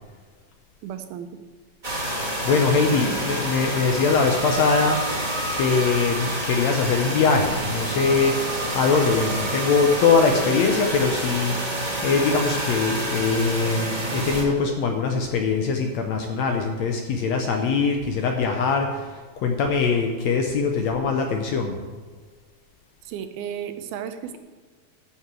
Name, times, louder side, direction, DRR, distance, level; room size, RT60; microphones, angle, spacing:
voice 1, 0.8-1.3 2.9-3.4 23.0-24.4, right 8 dB, 85° right, 8 dB, 2.7 m, -34 dB
sound 1, 1.8-14.4, right 1 dB, 25° right, 0.9 m, -28 dB
voice 2, 2.4-5.0 5.5-8.4 8.7-11.5 12.0-19.1 19.4-21.8, left 4 dB, 80° left, 3 dB, 1.5 m, -22 dB
13.0 x 5.9 x 7.6 m, 1.5 s
omnidirectional pair, 4.3 m